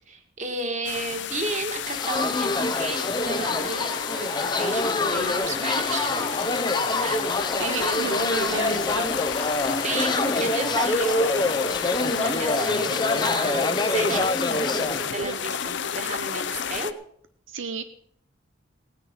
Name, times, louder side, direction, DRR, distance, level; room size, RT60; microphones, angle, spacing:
voice 1, 0.1-6.3 7.0-7.2 9.8-11.3 12.2-14.3 14.7-16.9, right 3 dB, 40° right, 5 dB, 2.1 m, -33 dB
sound 1, 0.8-16.9, left 8 dB, 65° left, 0.7 m, -31 dB
sound 2, 1.8-15.5, left 2 dB, 25° left, 0.9 m, -26 dB
voice 2, 7.6-9.1 12.1-12.4 17.5-17.8, right 4 dB, 90° right, 9 dB, 0.8 m, -32 dB
17.5 x 9.7 x 5.5 m, 0.62 s
head